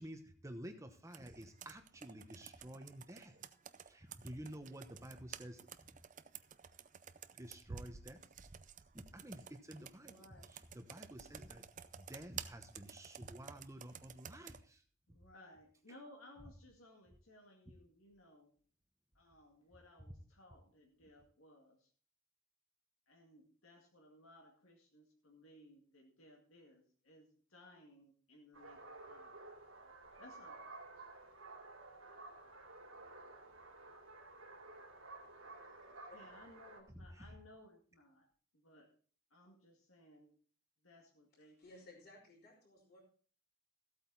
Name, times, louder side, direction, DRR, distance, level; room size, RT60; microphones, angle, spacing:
voice 1, 0.0-3.4 3.9-6.0 7.3-8.2 8.9-11.6 12.0-14.8 36.9-37.3, right 1 dB, 15° right, 7 dB, 1.0 m, -51 dB
Computer keyboard, 1.1-14.6, right 7 dB, 40° right, 0.5 m, -53 dB
voice 2, 10.0-10.5 15.1-18.5 19.1-21.9 23.1-29.4 30.2-30.7 36.1-38.3 38.5-38.9 39.3-40.4 40.8-41.6, left 1 dB, 75° left, 0 dB, 2.1 m, -61 dB
sound 1, 28.5-36.8, right 2 dB, 80° right, 2.7 m, -54 dB
voice 3, 41.6-43.0, left 1 dB, 45° left, -9 dB, 4.0 m, -58 dB
14.5 x 8.5 x 4.0 m, 0.42 s
head